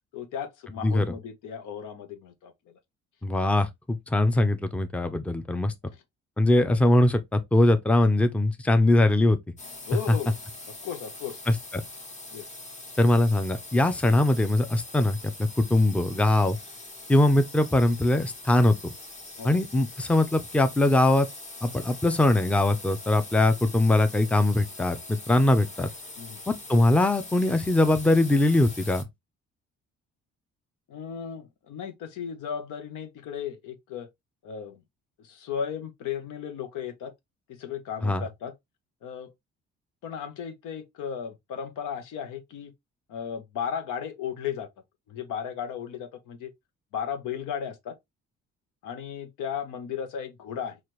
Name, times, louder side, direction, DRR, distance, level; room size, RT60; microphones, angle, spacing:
voice 1, 0.1-2.8 9.9-10.4 10.7-11.4 12.3-12.5 19.4-19.6 26.2-26.4 30.9-34.1 34.4-34.8 35.2-37.1 37.5-38.5 39.0-39.3 40.0-42.7 43.1-44.7 45.1-46.5 46.9-47.9 48.8-50.8, left 8 dB, 85° left, 0.9 m, -35 dB
voice 2, 3.2-5.7 6.4-9.4 10.1-10.2 11.5-11.6 13.0-16.6 17.1-18.9 19.4-21.3 21.6-25.9 26.5-29.0 38.0-38.2, left 1 dB, 5° left, 0.5 m, -22 dB
sound 1, 9.6-29.0, left 2 dB, 25° left, 1.0 m, -43 dB
4.3 x 2.5 x 3.1 m
cardioid pair, 90°, 30 cm